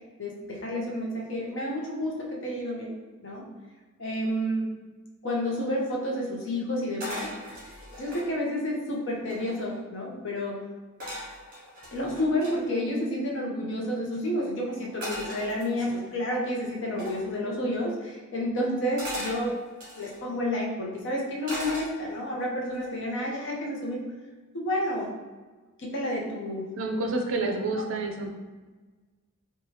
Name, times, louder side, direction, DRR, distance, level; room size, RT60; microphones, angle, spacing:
voice 1, 0.2-2.9 3.2-3.4 4.0-4.7 5.2-10.6 11.9-19.5 20.0-24.0 24.5-25.1 25.8-26.7, left 1 dB, 55° left, -2 dB, 0.6 m, -30 dB
sound 1, 7.0-8.3 8.9-9.0 9.2-9.8 11.0-12.6 15.0-16.1 17.0-17.3 19.0-20.2 21.4-22.3 22.7-23.1, left 1 dB, 40° right, 0.9 m, -38 dB
voice 2, 26.8-28.3, right 2 dB, 65° right, 3 dB, 0.4 m, -29 dB
2.7 x 2.2 x 3.0 m, 1.3 s
head